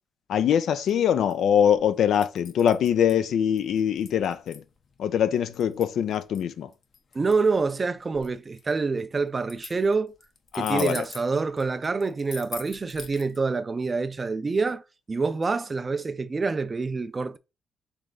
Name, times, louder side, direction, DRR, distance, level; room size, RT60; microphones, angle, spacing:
voice 1, 0.3-4.6 5.0-6.7 10.5-11.0, left 9 dB, 70° left, 0.3 m, -23 dB
sound 1, 0.7-13.4, left 5 dB, 50° left, 0.7 m, -45 dB
voice 2, 7.1-10.1 10.5-14.8 15.1-17.4, right 4 dB, 30° right, 0.4 m, -26 dB
3.5 x 3.3 x 3.7 m
cardioid pair, 90°, 0 cm